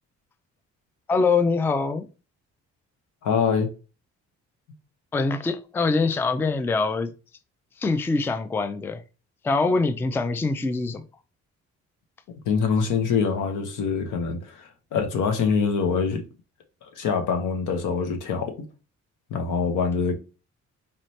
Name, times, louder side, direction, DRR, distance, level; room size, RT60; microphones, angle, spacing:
voice 1, 1.1-2.1 5.1-7.1 7.8-9.0 9.4-11.0, left 4 dB, 10° left, 0.3 m, -24 dB
voice 2, 3.2-3.7 12.5-16.2 16.9-18.5 19.3-20.1, left 5 dB, 85° left, 1.0 m, -24 dB
4.1 x 2.7 x 3.1 m
cardioid pair, 90°, 30 cm